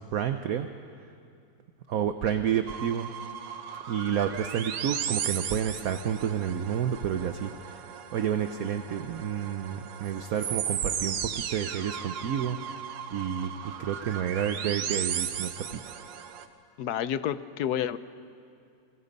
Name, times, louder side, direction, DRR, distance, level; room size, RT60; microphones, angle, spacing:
voice 1, 0.1-0.7 1.9-3.1 3.9-7.8 8.1-12.6 13.1-13.5 13.8-15.8, right 9 dB, 60° right, 8 dB, 1.0 m, -30 dB
sound 1, 2.7-16.5, right 8 dB, 80° right, 1.7 m, -36 dB
voice 2, 16.8-18.0, left 10 dB, 65° left, 14 dB, 1.1 m, -29 dB
28.5 x 24.0 x 5.4 m, 2.4 s
omnidirectional pair, 2.0 m